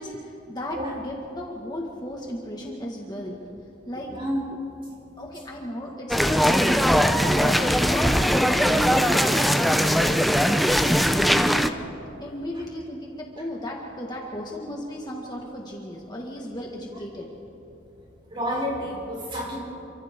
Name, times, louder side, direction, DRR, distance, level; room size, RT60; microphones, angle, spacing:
voice 1, 0.0-4.2 5.2-10.2 10.6-11.7 12.2-17.3, left 1 dB, 25° left, -2 dB, 1.9 m, -35 dB
sound 1, 6.1-11.7, equal, ahead, 0.7 m, -20 dB
voice 2, 18.3-19.6, equal, 30° right, -4 dB, 6.1 m, -29 dB
28.5 x 25.0 x 3.8 m, 2.8 s
head